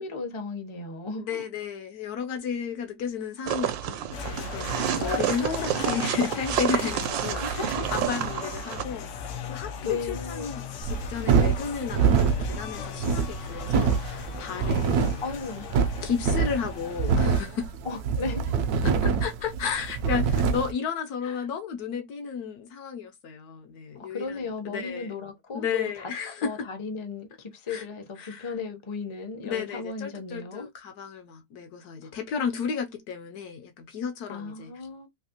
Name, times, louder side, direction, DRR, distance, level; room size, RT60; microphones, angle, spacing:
voice 1, 0.0-1.4 7.3-7.8 9.8-10.5 14.5-14.8 15.2-15.7 17.8-18.6 21.2-21.4 24.1-25.9 26.4-30.7 32.0-32.1 34.3-35.1, left 4 dB, 45° left, 0.4 m, -35 dB
voice 2, 1.2-15.2 16.0-17.7 18.8-25.1 25.5-26.7 27.7-27.8 28.2-28.5 29.4-34.9, left 6 dB, 70° left, 1.0 m, -33 dB
snow walking, 3.5-8.8, right 11 dB, 85° right, 1.3 m, -29 dB
sound 1, 4.1-17.4, left 7 dB, 90° left, 0.6 m, -38 dB
sound 2, 10.8-20.7, right 6 dB, 70° right, 0.9 m, -25 dB
3.3 x 2.8 x 2.8 m
omnidirectional pair, 2.0 m